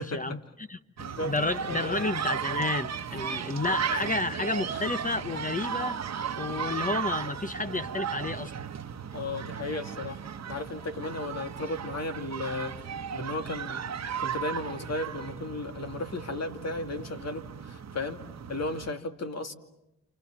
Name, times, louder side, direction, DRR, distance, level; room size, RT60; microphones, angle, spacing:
voice 1, 0.0-0.8 1.2-8.5, left 2 dB, 25° left, 10 dB, 0.9 m, -31 dB
voice 2, 1.0-1.3 1.7-2.1 3.7-4.1 4.7-4.9 9.1-12.9 13.1-13.8 14.2-18.2 18.5-19.5, left 2 dB, 55° left, 6 dB, 2.5 m, -35 dB
sound 1, 1.0-18.9, right 7 dB, 60° right, 1.1 m, -35 dB
29.0 x 27.5 x 7.3 m, 0.89 s
cardioid pair, 55°, 30 cm